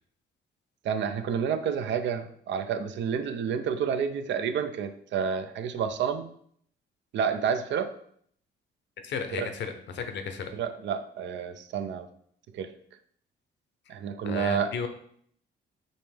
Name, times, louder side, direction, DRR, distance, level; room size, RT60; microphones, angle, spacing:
voice 1, 0.8-6.3 7.1-7.9 9.4-9.5 10.5-12.1 12.5-12.7 13.9-14.7, right 7 dB, 70° right, 9 dB, 0.5 m, -29 dB
voice 2, 9.0-10.5 14.2-14.9, left 5 dB, 65° left, 7 dB, 0.7 m, -34 dB
5.2 x 2.9 x 3.4 m, 0.63 s
cardioid pair, 90°, 20 cm